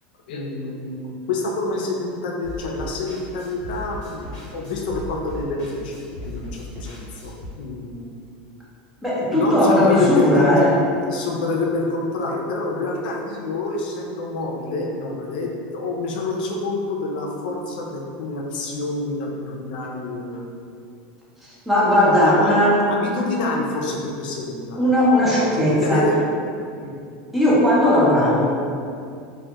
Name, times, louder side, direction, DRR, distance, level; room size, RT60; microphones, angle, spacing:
voice 1, 0.3-5.9 6.2-8.1 9.3-10.5 11.1-20.7 22.1-25.3 25.6-26.2 26.8-26.9, left 3 dB, 80° left, -1 dB, 0.4 m, -27 dB
sound 1, 2.4-7.5, left 2 dB, 30° left, 0.9 m, -36 dB
voice 2, 9.0-10.7 21.4-22.8 24.8-26.0 27.3-28.5, left 1 dB, 5° right, -8 dB, 0.4 m, -17 dB
2.2 x 2.1 x 2.8 m, 2.4 s
supercardioid pair, 175°, 5 cm